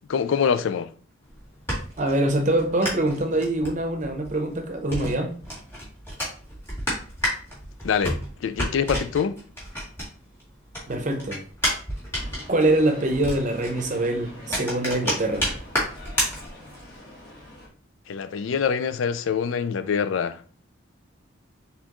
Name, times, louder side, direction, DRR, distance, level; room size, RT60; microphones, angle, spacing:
voice 1, 0.1-0.9 7.8-9.4 18.1-20.4, left 6 dB, 70° left, 0.3 m, -25 dB
sound 1, 1.2-10.4 10.7-17.0, equal, 10° left, 1.8 m, -31 dB
voice 2, 2.0-5.3 10.9-11.4 12.5-15.5, right 1 dB, 35° right, 0.7 m, -24 dB
sound 2, 12.1-17.7, left 1 dB, 50° left, 1.3 m, -44 dB
4.3 x 3.5 x 3.0 m
head